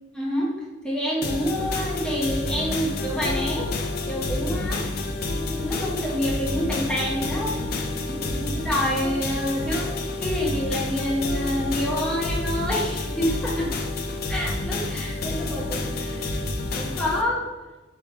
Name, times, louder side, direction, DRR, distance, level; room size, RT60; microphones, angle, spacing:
voice 1, 0.1-0.5 0.8-3.7 4.0-4.8 5.3-7.6 8.1-13.7 14.3-16.4 16.7-17.5, equal, 5° left, -4 dB, 1.0 m, -28 dB
sound 1, 1.2-17.2, left 2 dB, 55° left, 0.5 m, -29 dB
3.4 x 3.2 x 4.5 m, 1.2 s
head